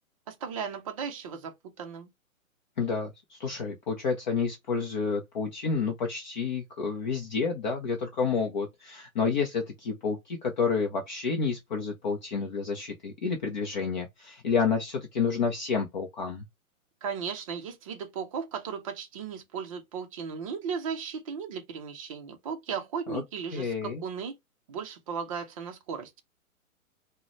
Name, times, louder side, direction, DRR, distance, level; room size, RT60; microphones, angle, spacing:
voice 1, 0.3-2.1 17.0-24.4 24.7-26.2, right 6 dB, 25° right, 0.5 m, -36 dB
voice 2, 2.8-16.4 23.1-23.2 23.5-24.0, left 5 dB, 35° left, 0.5 m, -29 dB
3.7 x 2.1 x 3.0 m
hypercardioid pair, 140°, 43 cm